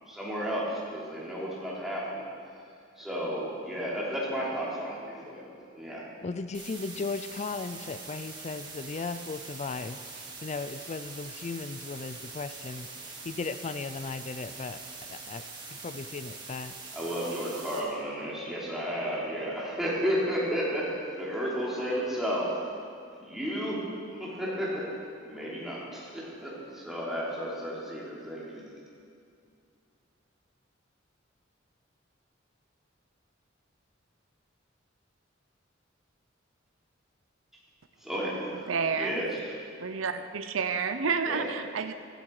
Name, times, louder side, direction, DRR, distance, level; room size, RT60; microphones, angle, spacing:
voice 1, 0.1-2.2 3.0-5.4 5.7-6.0 16.9-22.5 23.1-23.8 24.1-24.9 25.2-28.6 38.0-39.5 41.3-41.5, equal, ahead, -7 dB, 3.4 m, -33 dB
voice 2, 6.2-14.8 15.1-15.4 15.7-16.8, left 4 dB, 35° left, 11 dB, 0.4 m, -36 dB
sound 1, 6.5-17.8, right 4 dB, 25° right, 2.1 m, -43 dB
voice 3, 38.7-39.2 39.8-41.9, right 5 dB, 85° right, 9 dB, 0.6 m, -30 dB
15.5 x 13.0 x 4.8 m, 2.4 s
head